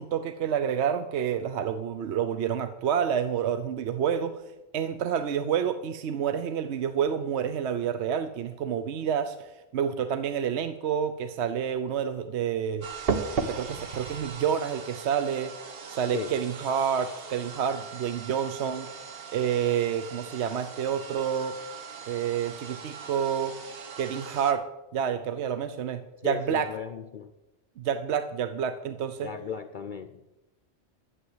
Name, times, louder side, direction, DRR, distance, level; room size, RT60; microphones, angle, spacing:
voice 1, 0.0-4.4 4.7-12.9 13.5-15.5 15.9-18.9 19.3-21.6 22.1-23.6 24.0-24.7 24.9-26.7 27.8-29.3, right 8 dB, 75° right, 0.9 m, -28 dB
sound 1, 12.8-24.5, right 5 dB, 60° right, 1.2 m, -37 dB
voice 2, 26.2-27.3 29.2-30.2, left 7 dB, 55° left, 0.6 m, -36 dB
11.5 x 7.7 x 7.8 m
omnidirectional pair, 1.2 m